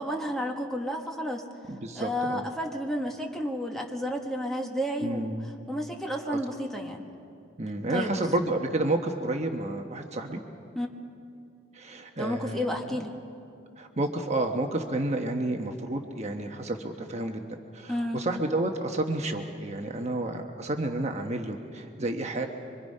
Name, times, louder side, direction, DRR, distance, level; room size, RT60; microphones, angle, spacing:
voice 1, 0.0-1.4 1.9-5.3 5.7-7.0 7.9-8.1 10.7-10.9 12.2-13.1 17.9-18.2, equal, ahead, 1 dB, 1.6 m, -31 dB
voice 2, 1.7-2.5 5.0-5.6 6.2-6.4 7.6-10.4 11.7-13.0 13.8-17.4 17.7-22.5, right 2 dB, 35° right, 3 dB, 1.1 m, -30 dB
25.5 x 24.5 x 5.5 m, 2.5 s
head